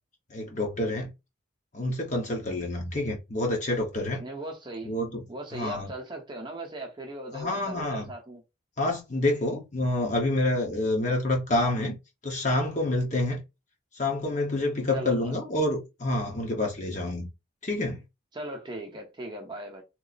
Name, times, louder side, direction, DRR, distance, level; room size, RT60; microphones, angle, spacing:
voice 1, 0.3-1.1 1.7-4.2 4.8-5.2 5.5-5.9 7.3-8.1 8.8-12.0 12.2-13.4 13.9-17.3 17.6-18.0, left 1 dB, 35° left, 0.9 m, -28 dB
voice 2, 4.2-4.9 5.3-8.4 14.9-15.5 18.3-19.8, right 1 dB, 25° right, 0.8 m, -38 dB
3.0 x 2.0 x 4.0 m
head